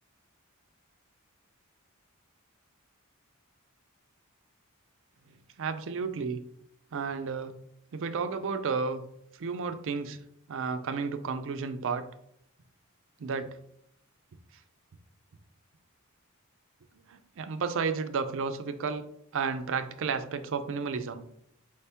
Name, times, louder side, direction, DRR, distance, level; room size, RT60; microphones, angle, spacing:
voice 1, 5.6-6.4 6.9-7.6 7.9-9.0 9.4-10.2 10.5-12.0 13.2-13.5 17.1-19.0 19.3-21.2, right 5 dB, 60° right, 10 dB, 0.4 m, -32 dB
4.9 x 3.4 x 2.8 m, 0.72 s
head